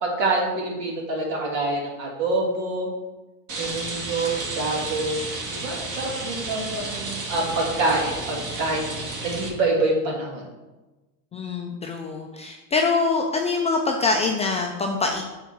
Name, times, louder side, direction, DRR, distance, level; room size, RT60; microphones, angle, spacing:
voice 1, 0.0-2.9 3.5-5.2 5.5-8.8 9.2-10.4, right 2 dB, 65° right, -1 dB, 2.6 m, -26 dB
Rain, 3.5-9.5, right 2 dB, 40° right, 2.1 m, -32 dB
voice 2, 11.3-15.2, left 4 dB, 15° left, 2 dB, 0.3 m, -24 dB
6.9 x 3.7 x 6.0 m, 1.1 s
hypercardioid pair, 105°, 47 cm